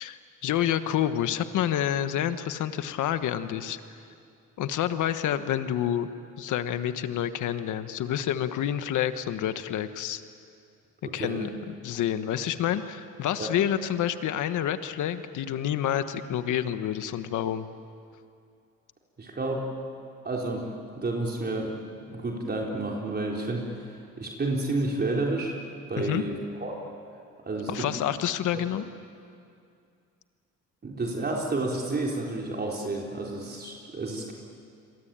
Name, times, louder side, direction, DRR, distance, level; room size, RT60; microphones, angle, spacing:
voice 1, 0.0-3.8 4.6-6.1 6.4-10.2 11.1-11.5 11.8-17.7 26.0-26.2 27.7-28.8, left 10 dB, 80° left, 10 dB, 1.4 m, -28 dB
voice 2, 11.0-11.5 13.4-13.6 19.2-19.7 20.2-20.7 21.0-25.6 25.9-26.8 27.4-27.9 30.8-34.3, right 2 dB, 35° right, -1 dB, 4.0 m, -30 dB
28.5 x 23.0 x 9.0 m, 2.4 s
cardioid pair, 90°, 30 cm